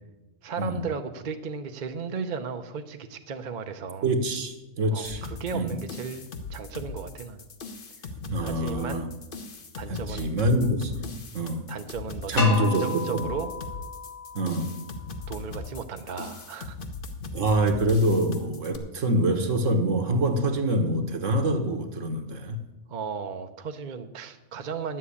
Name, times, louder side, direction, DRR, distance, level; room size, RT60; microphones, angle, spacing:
voice 1, 0.4-4.1 4.9-7.4 8.4-9.1 9.8-10.3 11.7-13.5 15.3-16.8 22.9-25.0, right 5 dB, 45° right, 7 dB, 0.7 m, -35 dB
voice 2, 4.0-5.2 5.5-5.7 8.3-9.1 9.9-11.1 11.3-11.7 12.3-13.3 14.3-14.7 17.3-22.6, right 1 dB, 65° right, 6 dB, 1.6 m, -25 dB
sound 1, 5.0-18.8, left 3 dB, 45° left, 1.1 m, -39 dB
sound 2, 12.4-15.3, left 2 dB, 85° left, 1.9 m, -33 dB
10.5 x 7.6 x 8.4 m, 1.1 s
omnidirectional pair, 1.4 m